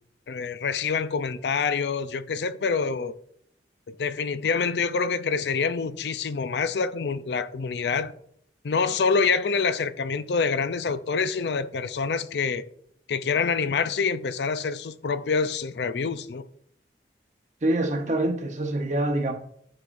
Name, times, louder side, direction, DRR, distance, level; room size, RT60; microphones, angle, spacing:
voice 1, 0.3-3.1 3.9-8.1 8.6-12.6 13.1-16.4, left 5 dB, 75° left, 0.5 m, -26 dB
voice 2, 17.6-19.3, right 1 dB, 40° right, 0.8 m, -25 dB
9.8 x 6.3 x 2.6 m
head